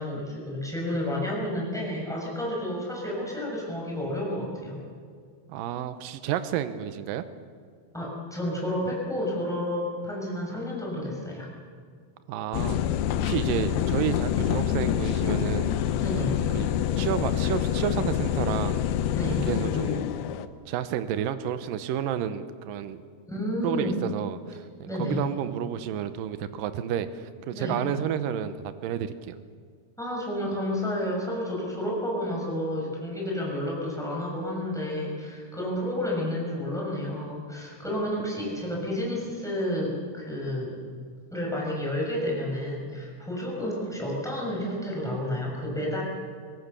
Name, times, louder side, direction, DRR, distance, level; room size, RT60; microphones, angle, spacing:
voice 1, 0.0-4.8 7.9-11.5 16.0-16.4 19.1-19.5 23.2-24.0 24.9-25.2 27.5-27.8 30.0-40.8 41.3-46.0, left 1 dB, ahead, -3 dB, 5.8 m, -30 dB
voice 2, 5.5-7.2 12.3-12.8 13.2-15.8 16.5-16.7 17.0-18.8 19.3-20.0 20.7-23.0 23.6-29.4, right 10 dB, 75° right, 11 dB, 2.1 m, -30 dB
sound 1, 12.5-20.5, left 10 dB, 75° left, 2.4 m, -26 dB
24.0 x 18.0 x 6.9 m, 2.1 s
omnidirectional pair, 4.9 m